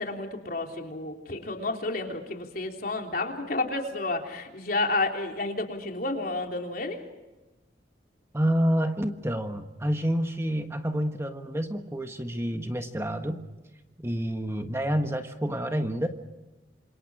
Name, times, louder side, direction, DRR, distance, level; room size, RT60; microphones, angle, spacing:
voice 1, 0.0-7.0, left 2 dB, 50° left, 2 dB, 3.6 m, -31 dB
voice 2, 8.3-13.5 14.0-16.1, equal, 15° right, 5 dB, 1.5 m, -28 dB
28.0 x 27.5 x 5.0 m, 1.1 s
head